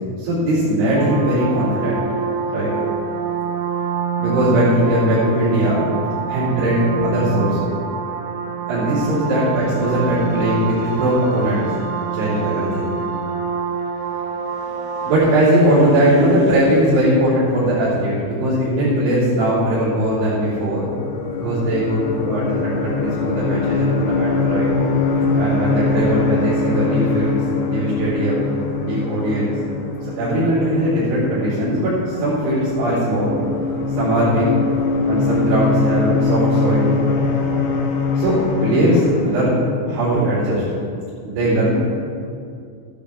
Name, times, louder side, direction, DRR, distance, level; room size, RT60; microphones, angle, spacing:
voice 1, 0.2-2.0 2.5-2.7 4.2-5.9 6.3-7.7 8.7-11.7 12.1-13.0 14.6-20.9 21.3-24.7 25.4-28.4 28.8-29.5 30.2-33.4 34.0-34.5 35.1-36.9 38.2-39.6 39.8-40.6 41.2-41.8, right 1 dB, 70° right, -12 dB, 6.0 m, -19 dB
sound 1, 1.0-15.2, right 6 dB, 90° right, 3.5 m, -26 dB
sound 2, 20.1-39.6, left 4 dB, 70° left, 2.9 m, -22 dB
14.5 x 12.0 x 3.5 m, 2.4 s
omnidirectional pair, 5.6 m